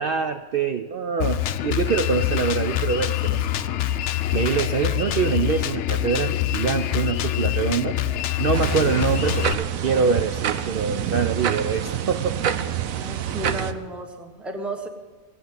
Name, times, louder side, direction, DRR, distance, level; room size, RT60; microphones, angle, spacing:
voice 1, 0.0-3.4 4.3-8.0 8.4-12.4, right 6 dB, 55° right, 7 dB, 0.6 m, -24 dB
Drum kit, 1.2-9.5, left 12 dB, 65° left, 0.8 m, -25 dB
sound 1, 8.5-13.7, right 9 dB, 90° right, 1.1 m, -27 dB
voice 2, 12.9-14.9, right 1 dB, ahead, 4 dB, 1.0 m, -33 dB
15.0 x 8.2 x 8.0 m, 1.3 s
omnidirectional pair, 1.4 m